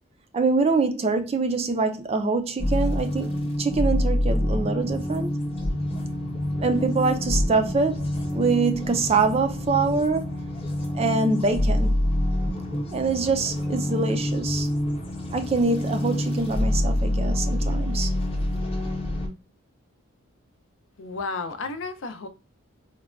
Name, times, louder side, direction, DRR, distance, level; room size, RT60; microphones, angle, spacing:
voice 1, 0.3-3.3 3.6-5.3 6.6-10.3 10.9-12.0 12.9-14.7 15.3-18.1, right 4 dB, 30° right, 0.3 m, -24 dB
sound 1, 2.6-19.3, left 1 dB, 25° left, 0.7 m, -26 dB
voice 2, 21.0-22.3, left 3 dB, 60° left, 0.5 m, -32 dB
3.9 x 2.1 x 2.3 m
head